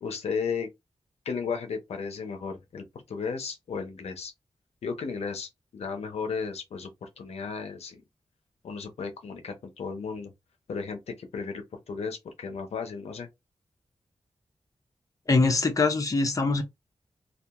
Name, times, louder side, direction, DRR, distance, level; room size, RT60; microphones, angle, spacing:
voice 1, 0.0-0.7 1.3-4.3 4.8-8.0 8.6-10.3 10.7-13.3, left 5 dB, 90° left, 0.6 m, -34 dB
voice 2, 15.3-16.6, left 3 dB, 35° left, 0.6 m, -23 dB
2.3 x 2.3 x 2.8 m
wide cardioid pair, 85°, 10 cm